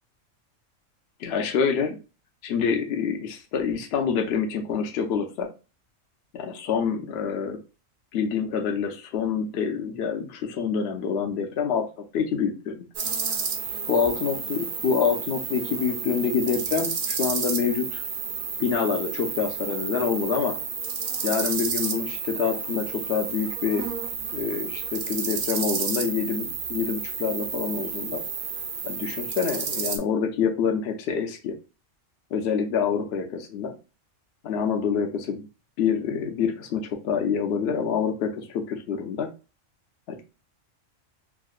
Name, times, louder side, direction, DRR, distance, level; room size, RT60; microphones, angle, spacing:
voice 1, 1.2-2.0 2.4-5.5 6.3-7.6 8.1-12.9 13.9-18.0 18.6-20.6 21.2-23.8 24.3-28.2 28.8-31.6 32.3-33.7 34.4-35.5 35.8-39.3 40.1-40.2, left 6 dB, 65° left, 3 dB, 0.7 m, -26 dB
sound 1, 12.9-30.0, right 5 dB, 55° right, 0.6 m, -31 dB
4.7 x 2.1 x 2.3 m, 0.32 s
omnidirectional pair, 1.3 m